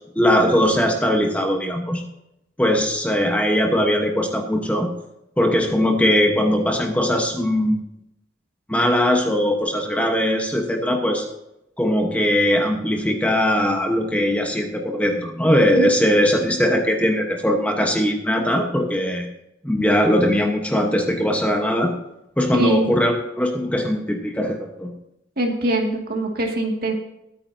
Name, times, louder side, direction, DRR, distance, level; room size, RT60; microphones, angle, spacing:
voice 1, 0.1-2.0 2.6-4.9 5.4-7.8 8.7-11.2 11.8-19.2 19.6-21.9 22.4-24.9, equal, 10° left, 3 dB, 1.1 m, -20 dB
voice 2, 22.5-22.9 25.4-26.9, right 1 dB, 50° right, 1 dB, 2.2 m, -22 dB
22.5 x 8.9 x 2.8 m, 0.85 s
head